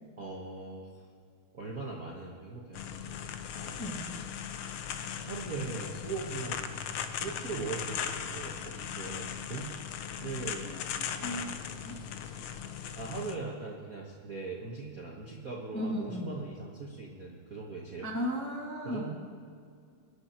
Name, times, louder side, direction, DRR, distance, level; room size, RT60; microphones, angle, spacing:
voice 1, 0.2-1.0 1.5-4.0 5.2-6.8 7.2-9.7 10.2-10.7 11.2-11.6 13.0-18.1 18.8-19.1, right 4 dB, 40° right, -3 dB, 1.2 m, -40 dB
sound 1, 2.7-13.4, left 8 dB, 80° left, 1.2 m, -38 dB
voice 2, 10.7-11.5 11.8-12.0 15.7-16.3 18.0-19.1, equal, 10° left, -2 dB, 1.2 m, -36 dB
24.5 x 10.0 x 4.5 m, 2.2 s
omnidirectional pair, 3.4 m